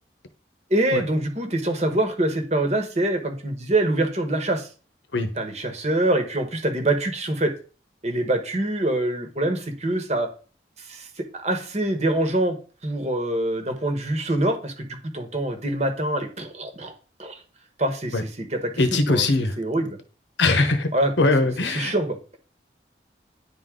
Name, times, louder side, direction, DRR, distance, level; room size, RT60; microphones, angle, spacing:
voice 1, 0.7-4.7 5.4-7.5 8.0-10.3 10.8-12.6 12.8-14.9 15.1-16.9 17.2-17.4 17.8-19.3 19.6-20.0 20.9-21.3 21.7-22.2, right 1 dB, 40° right, 1.2 m, -25 dB
voice 2, 18.8-19.6 20.4-21.9, left 2 dB, 80° left, 1.0 m, -21 dB
10.0 x 3.9 x 3.7 m
head